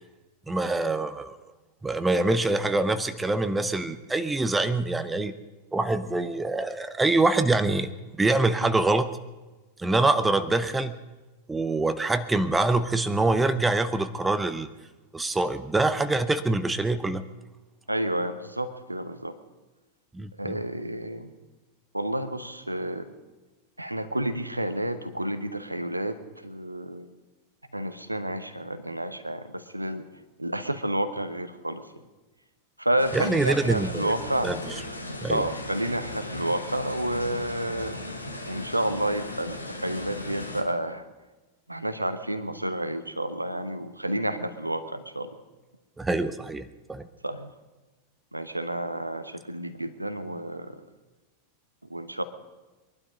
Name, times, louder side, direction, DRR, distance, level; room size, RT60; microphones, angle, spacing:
voice 1, 0.5-1.4 1.8-5.3 5.7-9.1 9.8-11.0 11.5-14.7 15.1-17.2 20.1-20.6 33.1-34.1 34.4-34.8 35.2-35.5 46.0-47.0, right 2 dB, 10° right, 11 dB, 0.8 m, -25 dB
voice 2, 17.9-19.3 20.4-21.3 21.9-23.1 23.8-26.2 26.4-27.1 27.7-30.0 30.4-31.8 32.8-34.5 35.3-38.0 38.5-41.0 41.7-45.3 47.2-47.5 48.3-50.8 51.9-52.2, right 1 dB, 85° right, 11 dB, 1.0 m, -30 dB
sound 1, 33.0-40.6, left 2 dB, 85° left, 1.7 m, -37 dB
22.0 x 11.5 x 5.2 m, 1.2 s
figure-of-eight pair, 90°, 0 cm